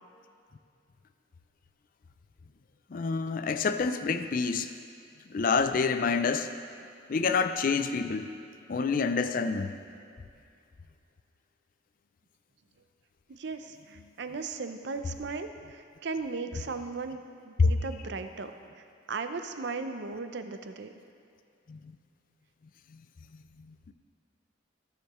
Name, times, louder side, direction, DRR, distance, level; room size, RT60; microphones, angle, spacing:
voice 1, 2.9-4.7 5.3-6.5 7.1-8.3 8.7-9.7 17.6-17.7 21.7-21.9 22.9-23.0 23.7-23.9, left 5 dB, 45° left, 10 dB, 0.4 m, -27 dB
voice 2, 13.3-18.5 19.1-20.9, right 4 dB, 60° right, 8 dB, 0.5 m, -37 dB
14.5 x 6.6 x 3.1 m, 2.4 s
head